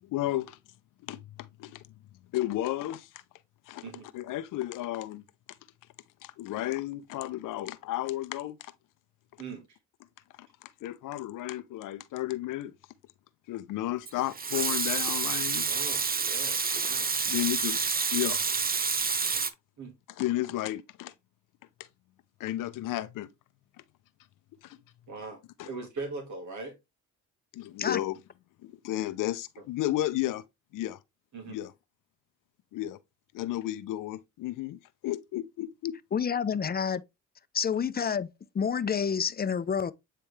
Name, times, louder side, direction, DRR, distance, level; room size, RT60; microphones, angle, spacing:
voice 1, 0.1-0.6 1.0-1.2 1.6-1.8 2.3-3.1 3.7-3.8 4.1-5.2 6.2-8.7 10.4-12.7 13.5-15.7 17.2-18.4 20.2-21.1 22.4-23.3 24.6-24.8 25.6-25.7 27.5-28.2 28.6-30.4 30.7-31.0 31.5-31.7 32.7-33.0 33.3-36.0, left 14 dB, 80° left, 0.7 m, -33 dB
Water tap faucet / Sink (filling or washing) / Liquid, 14.1-19.5, right 5 dB, 30° right, 0.8 m, -28 dB
voice 2, 15.7-17.1 19.8-19.9 25.1-26.7 31.3-31.6, right 3 dB, 65° right, 1.8 m, -40 dB
voice 3, 36.1-37.0 37.5-38.3 38.5-39.9, left 7 dB, 30° left, 0.6 m, -28 dB
8.6 x 3.4 x 3.3 m
cardioid pair, 75°, 31 cm